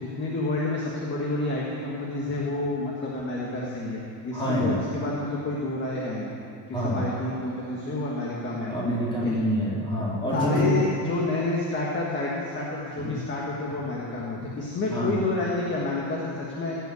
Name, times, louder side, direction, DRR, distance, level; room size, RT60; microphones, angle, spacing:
voice 1, 0.0-6.3 6.7-8.7 9.2-9.3 10.3-16.8, left 2 dB, 25° left, -4 dB, 1.7 m, -29 dB
voice 2, 4.3-4.8 6.7-7.1 8.7-10.8 13.0-13.2 14.9-15.2, equal, 10° left, -6 dB, 3.5 m, -26 dB
16.0 x 8.3 x 8.3 m, 2.4 s
cardioid pair, 180°, 42 cm